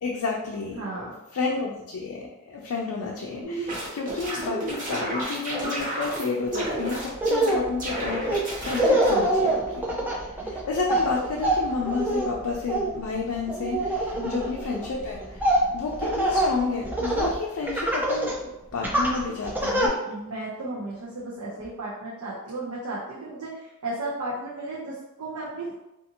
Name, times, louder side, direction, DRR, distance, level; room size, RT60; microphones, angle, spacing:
voice 1, 0.0-10.1 10.4-15.2 15.7-20.0, left 4 dB, 85° left, -1 dB, 0.4 m, -31 dB
voice 2, 0.8-1.1 10.4-10.5 14.2-14.5 20.1-25.7, right 2 dB, 85° right, -7 dB, 0.6 m, -34 dB
sound 1, 3.4-6.3 6.5-7.5 7.8-9.1, right 1 dB, 35° right, 0.9 m, -31 dB
Laughter, 6.5-6.7 7.1-17.4 17.7-18.4 18.8-19.9, right 1 dB, 10° right, 0.4 m, -25 dB
2.6 x 2.5 x 2.7 m, 0.94 s
head